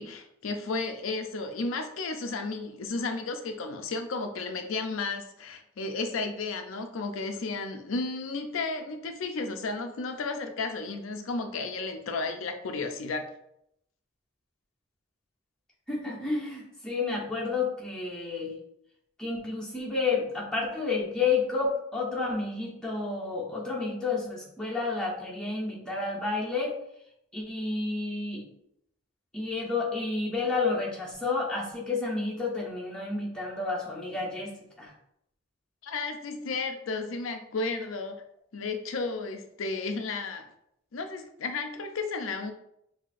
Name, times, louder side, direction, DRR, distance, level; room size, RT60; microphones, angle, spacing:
voice 1, 0.0-13.3 35.8-38.2 38.5-40.4 40.9-42.5, left 3 dB, 85° left, 6 dB, 0.5 m, -33 dB
voice 2, 15.9-18.5 19.2-26.8 27.3-28.4 29.3-34.5 34.8-34.9, left 4 dB, 5° left, -6 dB, 0.9 m, -30 dB
5.6 x 2.7 x 2.5 m, 0.76 s
head